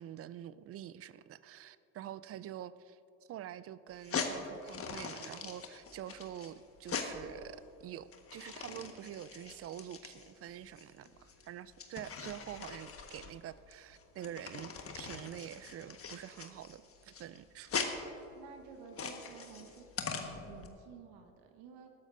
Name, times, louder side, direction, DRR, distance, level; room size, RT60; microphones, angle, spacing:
voice 1, 0.0-3.0 3.3-17.8, right 11 dB, 35° right, 16 dB, 0.4 m, -46 dB
sound 1, 3.9-20.7, left 5 dB, 30° left, 1.3 m, -42 dB
voice 2, 18.3-21.9, right 6 dB, 60° right, 4 dB, 1.3 m, -53 dB
20.0 x 12.5 x 2.6 m, 2.7 s
hypercardioid pair, 70°, 45 cm